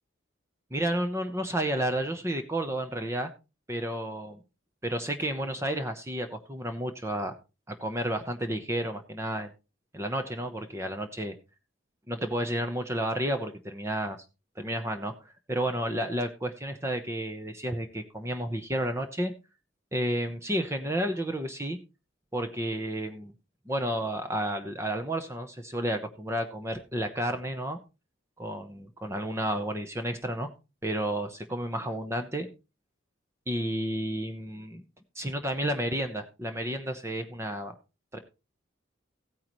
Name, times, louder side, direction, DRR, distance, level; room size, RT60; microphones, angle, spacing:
voice 1, 0.7-3.3 3.7-4.3 4.8-7.3 7.7-9.5 9.9-11.3 12.1-14.2 14.6-15.1 15.5-19.3 19.9-21.8 22.3-23.3 23.7-27.8 28.4-30.5 30.8-32.5 33.5-34.8 35.1-37.7 38.1-38.2, right 1 dB, 15° right, 7 dB, 0.9 m, -31 dB
15.5 x 9.4 x 3.1 m, 0.29 s
head